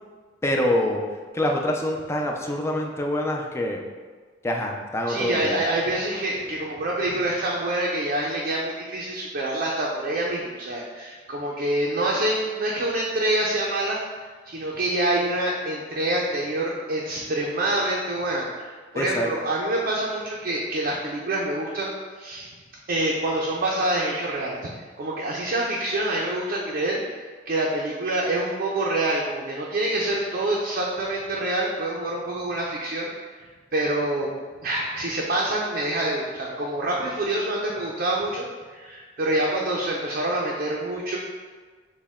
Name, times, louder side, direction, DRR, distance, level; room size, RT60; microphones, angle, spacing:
voice 1, 0.4-1.0 1.3-3.8 4.4-5.6 19.0-19.3, left 1 dB, 15° left, 1 dB, 0.4 m, -25 dB
voice 2, 5.1-14.0 14.5-18.7 18.9-22.5 22.9-24.7 25.0-27.0 27.5-33.1 33.7-34.3 34.6-38.5 38.7-41.2, right 1 dB, 55° right, -3 dB, 0.5 m, -26 dB
6.2 x 2.2 x 3.5 m, 1.5 s
head